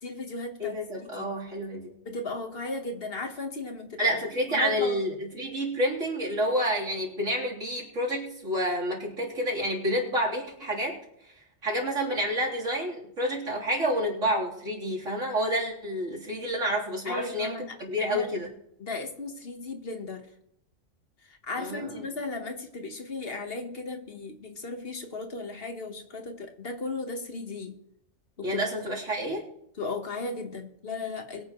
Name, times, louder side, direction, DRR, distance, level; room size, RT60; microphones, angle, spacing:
voice 1, 0.0-0.8 1.2-1.3 2.0-4.1 4.5-5.0 17.0-17.8 18.0-18.3 18.8-20.3 21.2-27.8 28.4-28.6 29.8-31.4, left 3 dB, 50° left, 6 dB, 1.5 m, -36 dB
voice 2, 0.6-1.9 4.0-11.0 11.6-18.5 21.6-22.0 28.4-29.4, equal, 90° right, -5 dB, 3.9 m, -29 dB
22.0 x 9.6 x 3.1 m, 0.76 s
omnidirectional pair, 1.3 m